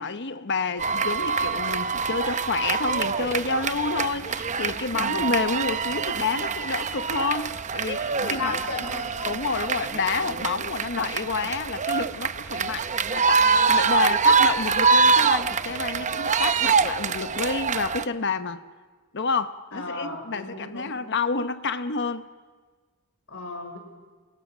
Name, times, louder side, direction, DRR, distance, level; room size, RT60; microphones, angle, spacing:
voice 1, 0.0-8.5 9.2-18.6 19.1-22.3, left 4 dB, 55° left, 1.0 m, -29 dB
sound 1, 0.8-18.0, right 5 dB, 35° right, 0.8 m, -25 dB
voice 2, 5.0-5.3 8.2-9.3 19.7-21.0 23.3-23.8, left 2 dB, 80° left, 5.8 m, -34 dB
30.0 x 28.5 x 6.3 m
head